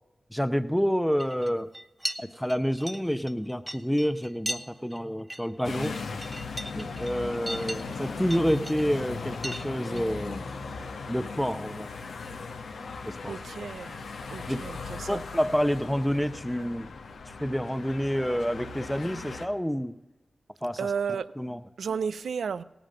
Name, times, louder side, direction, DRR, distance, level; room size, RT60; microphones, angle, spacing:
voice 1, 0.3-1.7 2.2-5.9 6.8-10.4 11.1-11.9 13.0-13.4 14.5-14.6 15.1-16.9 17.4-19.9 20.6-20.8 21.4-21.6, equal, 5° left, 10 dB, 0.8 m, -28 dB
sound 1, 1.2-1.5 1.7-2.2 2.4-4.6 4.9-5.0 5.3-5.4 5.8-8.0 8.3-8.8 9.4-9.6 10.0-10.2, right 1 dB, 15° right, 1.0 m, -37 dB
sound 2, 5.6-19.5, left 4 dB, 85° left, 1.1 m, -38 dB
voice 2, 13.3-14.0 14.3-15.2 20.8-21.3 21.8-22.6, right 6 dB, 90° right, 17 dB, 0.4 m, -33 dB
17.0 x 9.1 x 6.6 m, 1.0 s
cardioid pair, 40°, 0 cm